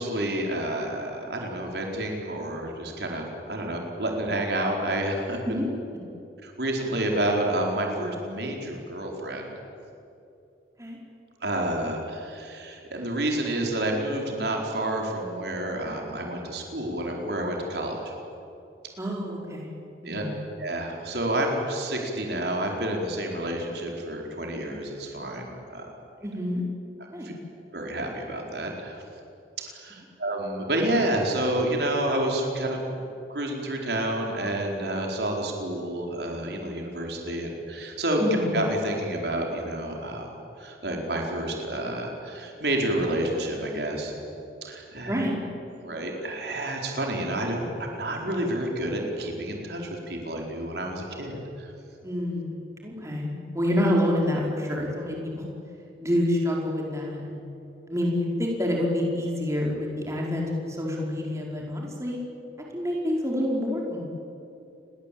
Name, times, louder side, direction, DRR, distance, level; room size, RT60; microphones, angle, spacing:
voice 1, 0.0-5.6 6.4-9.5 11.4-18.1 20.0-20.2 20.6-25.5 25.7-25.9 27.2-27.3 27.7-29.0 29.7-32.8 33.3-38.2 38.5-44.1 44.6-45.2 45.8-51.7, right 1 dB, 65° right, 1 dB, 4.5 m, -29 dB
voice 2, 19.0-19.7 20.0-20.3 26.2-26.6 27.1-27.3 38.2-38.6 45.1-45.4 52.0-55.5 56.0-57.4 57.9-62.2 62.7-64.0, left 1 dB, 15° right, -2 dB, 4.9 m, -27 dB
29.5 x 22.0 x 8.7 m, 2.7 s
head